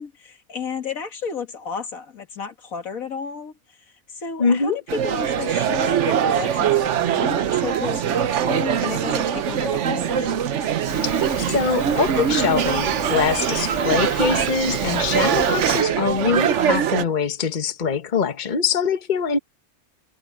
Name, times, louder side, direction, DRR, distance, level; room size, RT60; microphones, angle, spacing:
voice 1, 0.0-3.5 4.1-10.6, left 5 dB, 85° left, 2.3 m, -32 dB
voice 2, 4.4-4.8 11.0-11.1 11.5-19.4, left 6 dB, 35° left, 1.2 m, -23 dB
sound 1, 4.9-17.0, right 9 dB, 65° right, 1.1 m, -22 dB
Rain, 10.9-15.8, left 2 dB, 15° left, 1.6 m, -35 dB
omnidirectional pair, 1.4 m